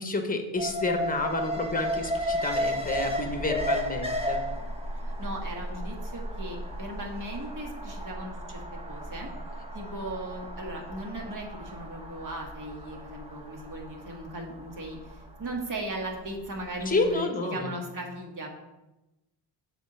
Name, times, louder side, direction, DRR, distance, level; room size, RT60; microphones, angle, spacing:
voice 1, 0.0-4.4 16.9-17.7, left 2 dB, 20° left, 5 dB, 1.1 m, -29 dB
Alarm, 0.6-16.7 17.0-17.1, equal, 10° right, 1.1 m, -34 dB
voice 2, 5.2-9.3 9.7-18.5, right 1 dB, 40° right, 0 dB, 1.8 m, -37 dB
7.1 x 3.7 x 5.9 m, 1.0 s
cardioid pair, 80°, 47 cm